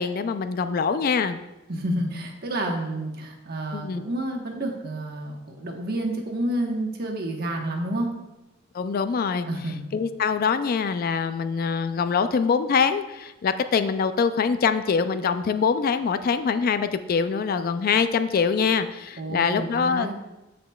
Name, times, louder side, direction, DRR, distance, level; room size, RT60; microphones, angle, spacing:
voice 1, 0.0-1.4 3.7-4.0 8.7-9.5 9.9-20.1, left 6 dB, 50° left, 11 dB, 0.3 m, -24 dB
voice 2, 1.7-8.1 9.5-9.8 19.2-20.1, right 1 dB, 55° right, 1 dB, 1.2 m, -29 dB
13.5 x 5.0 x 2.3 m, 1.0 s
head